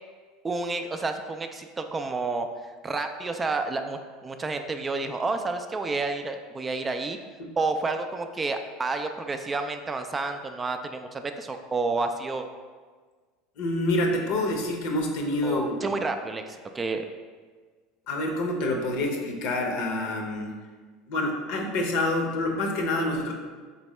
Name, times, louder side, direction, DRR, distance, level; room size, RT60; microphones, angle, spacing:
voice 1, 0.4-2.5 2.8-7.2 7.6-12.5 15.4-17.0, right 3 dB, 25° right, 7 dB, 0.3 m, -30 dB
voice 2, 13.6-15.9 18.1-20.5 21.1-23.3, left 1 dB, 65° left, 2 dB, 0.7 m, -27 dB
4.0 x 3.4 x 3.1 m, 1.5 s
hypercardioid pair, 80°, 0 cm